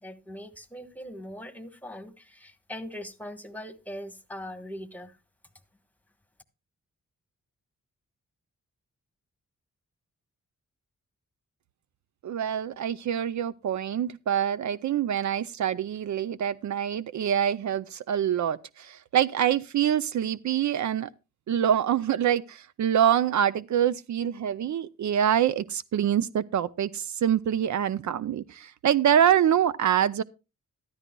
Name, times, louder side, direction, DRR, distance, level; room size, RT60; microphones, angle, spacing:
voice 1, 0.0-5.2, equal, 5° left, 1.2 m, -41 dB
voice 2, 12.2-21.1 21.5-30.2, right 9 dB, 70° right, 0.5 m, -25 dB
14.0 x 12.5 x 2.2 m
cardioid pair, 75°, 31 cm